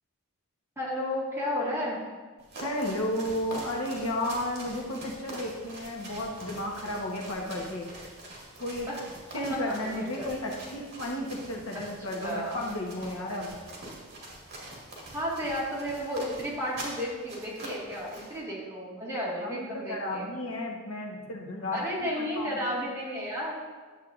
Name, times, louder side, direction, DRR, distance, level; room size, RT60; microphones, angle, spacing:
voice 1, 0.8-2.0 8.9-9.0 9.5-10.3 11.7-11.8 12.2-12.6 15.1-20.3 21.7-23.5, equal, 15° right, -6 dB, 1.7 m, -33 dB
sound 1, 2.4-18.4, right 1 dB, 50° right, 2.1 m, -44 dB
voice 2, 2.6-8.1 8.6-8.9 9.3-13.5 19.4-22.7, left 1 dB, 70° left, -1 dB, 1.1 m, -33 dB
10.0 x 7.4 x 2.5 m, 1.4 s
head